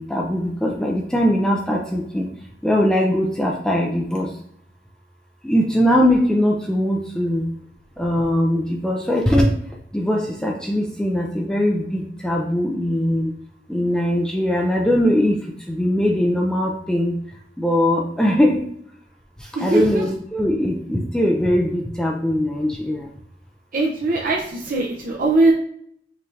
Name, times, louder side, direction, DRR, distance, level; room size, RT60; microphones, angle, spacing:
voice 1, 0.0-2.3 2.6-4.3 5.4-7.5 8.0-9.5 9.9-13.3 13.7-15.4 15.7-17.1 17.6-18.6 19.6-23.0, equal, 5° left, -1 dB, 0.4 m, -20 dB
voice 2, 19.5-20.0 23.7-25.5, right 2 dB, 50° right, -1 dB, 0.6 m, -20 dB
5.5 x 2.7 x 3.1 m, 0.68 s
head